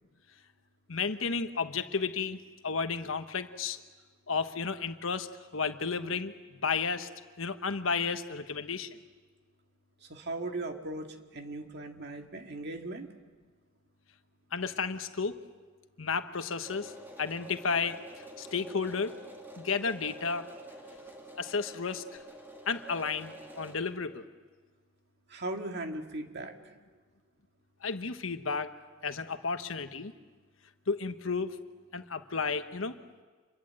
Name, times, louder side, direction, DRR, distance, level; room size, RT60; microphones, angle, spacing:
voice 1, 0.9-2.4 2.6-3.8 4.3-7.1 7.4-8.9 14.5-15.3 16.0-16.9 17.2-18.0 18.4-19.2 19.6-20.4 21.4-22.0 22.7-24.3 27.8-28.7 29.0-30.1 30.9-31.5 31.9-33.0, left 5 dB, 85° left, 9 dB, 1.2 m, -32 dB
voice 2, 10.0-13.1 25.3-26.7, right 2 dB, 55° right, 4 dB, 2.0 m, -38 dB
sound 1, 16.6-23.8, right 1 dB, 10° right, 2.6 m, -48 dB
27.0 x 22.5 x 7.7 m, 1.4 s
head